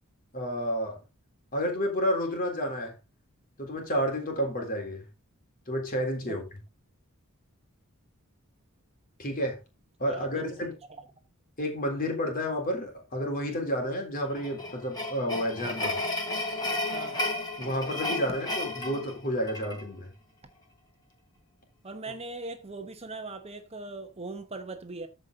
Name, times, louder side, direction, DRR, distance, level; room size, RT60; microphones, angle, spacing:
voice 1, 0.3-1.0 1.5-2.9 3.6-5.1 5.7-6.6 9.2-9.6 10.0-10.8 11.6-16.0 17.6-20.1 22.1-22.2, equal, 40° left, 3.7 m, -30 dB
voice 2, 10.1-10.6 16.9-17.2 21.8-25.1, right 3 dB, 30° right, 1.0 m, -40 dB
sound 1, 14.3-19.8, left 2 dB, 20° left, 4.6 m, -33 dB
13.5 x 5.3 x 3.9 m
head